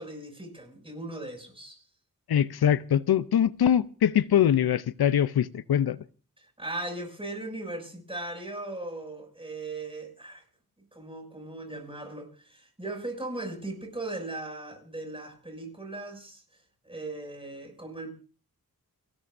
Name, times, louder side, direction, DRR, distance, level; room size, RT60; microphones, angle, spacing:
voice 1, 0.0-1.8 6.4-10.4 10.9-16.4 16.8-18.1, right 2 dB, 15° right, 3 dB, 6.3 m, -38 dB
voice 2, 2.3-6.0, left 9 dB, 90° left, 16 dB, 0.6 m, -23 dB
30.0 x 12.5 x 2.6 m, 0.38 s
wide cardioid pair, 75°, 36 cm